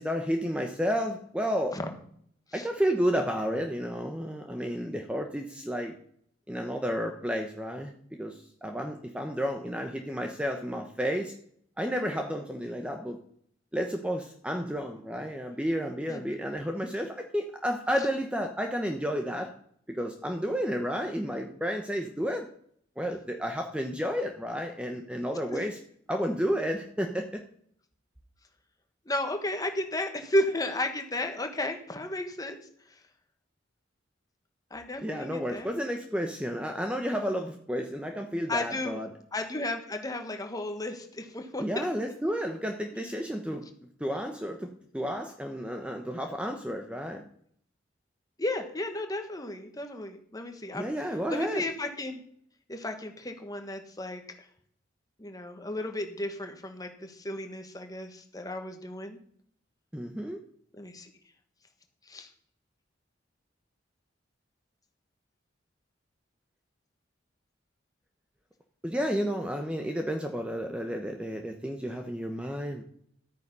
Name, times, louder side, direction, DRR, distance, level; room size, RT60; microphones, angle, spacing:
voice 1, 0.0-1.8 2.5-6.0 6.5-11.3 11.8-13.2 13.7-19.5 19.9-22.5 23.0-25.8 26.1-27.4 35.0-39.1 41.6-43.7 44.0-47.2 50.7-51.6 59.9-60.4 68.8-72.8, equal, 5° right, 4 dB, 0.9 m, -31 dB
voice 2, 29.0-32.6 34.7-35.7 38.5-39.0 39.3-41.9 48.4-50.9 51.3-52.2 52.7-54.2 55.2-59.2 60.8-61.1 62.1-62.3, left 1 dB, 20° left, 5 dB, 1.5 m, -33 dB
12.5 x 9.1 x 5.5 m, 0.64 s
head